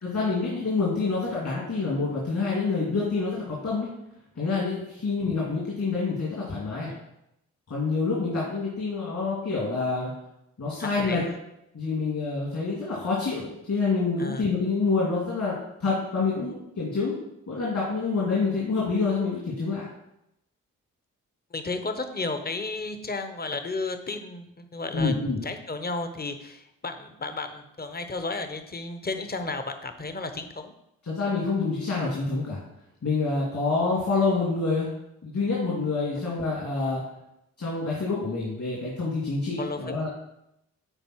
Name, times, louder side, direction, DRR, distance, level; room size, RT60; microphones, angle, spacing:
voice 1, 0.0-3.9 4.3-6.9 7.7-10.1 10.6-11.3 11.7-17.2 17.5-19.8 24.9-25.4 31.0-32.6 33.0-34.9 35.2-37.0 37.6-40.1, left 4 dB, 55° left, -5 dB, 2.9 m, -27 dB
voice 2, 10.8-11.3 14.2-14.5 21.5-30.7 36.2-36.3 39.6-39.8, left 3 dB, 25° left, 8 dB, 1.0 m, -33 dB
8.9 x 4.3 x 4.7 m, 0.83 s
supercardioid pair, 45°, 34 cm